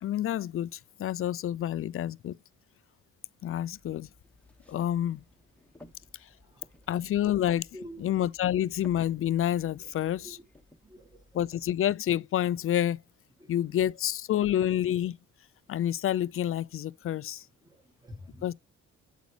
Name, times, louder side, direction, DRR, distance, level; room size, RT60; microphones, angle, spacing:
voice 1, 0.0-2.4 3.4-4.1 4.7-5.2 6.9-7.7 8.0-10.4 11.3-13.0 13.5-15.2 15.7-17.4 18.4-18.5, left 11 dB, 45° left, 0.4 m, -28 dB
sound 1, 3.6-11.7, left 2 dB, 5° left, 1.3 m, -57 dB
voice 2, 10.8-11.2 13.4-13.8 17.6-18.5, equal, 10° right, 2.0 m, -48 dB
8.2 x 8.1 x 3.3 m
cardioid pair, 90°, 30 cm